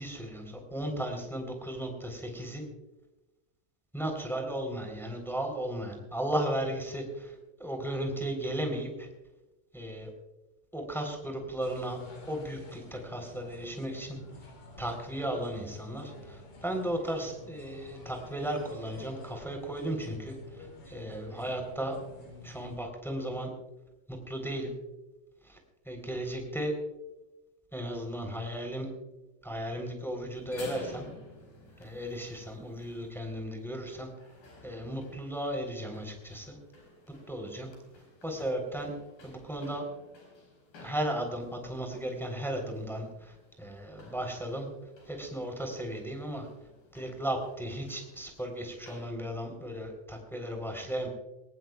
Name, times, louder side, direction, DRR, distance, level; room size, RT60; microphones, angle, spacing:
voice 1, 0.0-2.6 3.9-7.3 7.6-9.1 9.7-10.1 10.7-12.0 12.3-14.2 14.8-22.0 22.4-23.5 24.1-24.7 25.4-25.6 25.8-26.7 27.7-28.9 29.4-31.1 31.8-34.1 34.6-36.6 37.3-37.7 38.2-38.9 39.2-39.8 40.8-44.7 45.0-46.5 46.9-51.1, right 1 dB, ahead, 3 dB, 2.5 m, -35 dB
sound 1, 11.6-22.8, left 2 dB, 85° left, 5.8 m, -49 dB
sound 2, 30.3-49.1, left 2 dB, 55° left, 6.3 m, -54 dB
21.5 x 18.5 x 2.3 m, 1.0 s
omnidirectional pair, 4.9 m